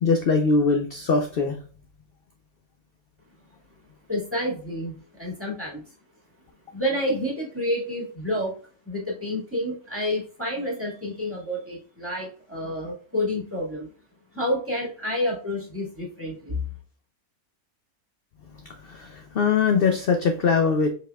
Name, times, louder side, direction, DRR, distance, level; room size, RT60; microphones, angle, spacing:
voice 1, 0.0-1.6 18.8-20.9, left 4 dB, 60° left, 6 dB, 0.6 m, -22 dB
voice 2, 4.1-5.8 6.7-8.5 8.9-13.9 14.3-16.6, left 1 dB, 10° right, -4 dB, 1.9 m, -29 dB
5.2 x 4.1 x 2.2 m, 0.41 s
omnidirectional pair, 1.6 m